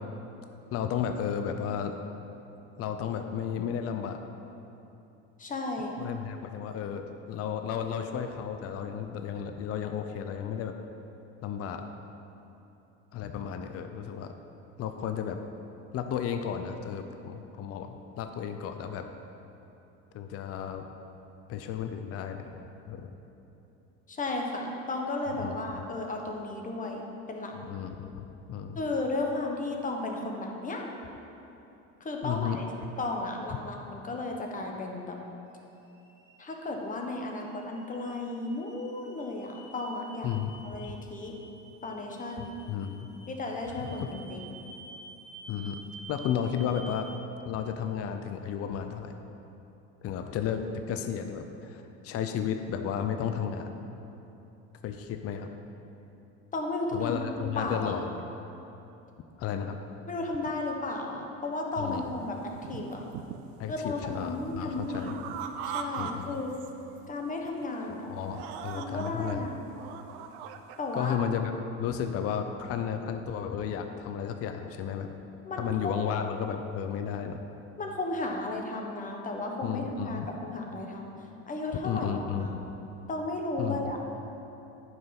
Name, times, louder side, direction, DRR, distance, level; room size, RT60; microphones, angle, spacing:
voice 1, 0.7-1.9 2.8-4.2 6.0-10.7 11.4-11.9 13.1-14.3 14.8-15.4 15.9-19.1 20.1-20.8 21.5-23.1 25.4-25.8 27.6-28.8 32.2-32.6 40.2-40.5 40.9-41.0 42.4-43.1 43.8-44.1 45.5-45.8 46.1-47.1 47.4-49.1 50.0-53.8 54.8-55.5 56.9-58.2 59.4-59.8 61.8-62.2 63.6-65.2 66.0-66.4 67.9-69.5 70.9-71.5 71.8-75.1 75.6-77.4 79.6-80.3 81.8-82.7 83.6-83.9, left 8 dB, 45° left, 6 dB, 0.6 m, -33 dB
voice 2, 5.4-5.9 24.1-27.5 28.7-30.9 32.0-32.6 33.0-35.2 36.4-40.3 40.6-41.3 41.8-42.6 43.3-44.6 56.5-58.0 60.1-63.0 63.7-65.2 65.6-66.5 67.1-68.1 68.7-69.6 70.8-71.2 75.4-76.1 77.8-81.1 81.5-82.1 82.4-82.5 83.1-84.0, left 2 dB, 25° left, 1 dB, 1.3 m, -34 dB
sound 1, 35.5-47.2, right 2 dB, 30° right, 2.0 m, -51 dB
sound 2, 61.9-62.0 62.4-63.6 63.9-66.1 66.4-67.0 67.5-67.6 68.2-69.3 69.7-70.8, right 8 dB, 90° right, 0.7 m, -40 dB
9.2 x 5.6 x 5.9 m, 3.0 s
supercardioid pair, 115°, 32 cm